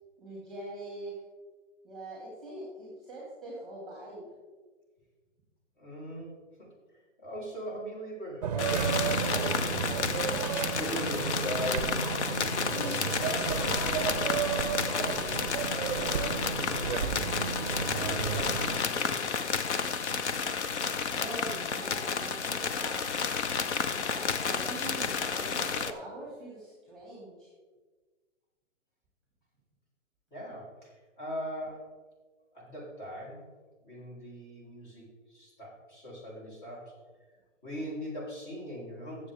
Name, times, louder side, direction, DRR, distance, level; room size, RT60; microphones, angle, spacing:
voice 1, 0.2-1.1 1.8-4.3 21.1-23.0 23.9-27.5, right 1 dB, ahead, -5 dB, 2.1 m, -43 dB
voice 2, 5.8-17.0 17.6-19.2 30.3-31.9 32.5-33.5 33.8-36.9 37.6-39.3, equal, 40° left, -4 dB, 3.4 m, -41 dB
sound 1, 8.4-18.8, right 6 dB, 35° right, 0.5 m, -32 dB
sound 2, 8.6-25.9, left 6 dB, 60° left, 0.8 m, -31 dB
15.0 x 7.3 x 3.5 m, 1.4 s
hypercardioid pair, 165°, 38 cm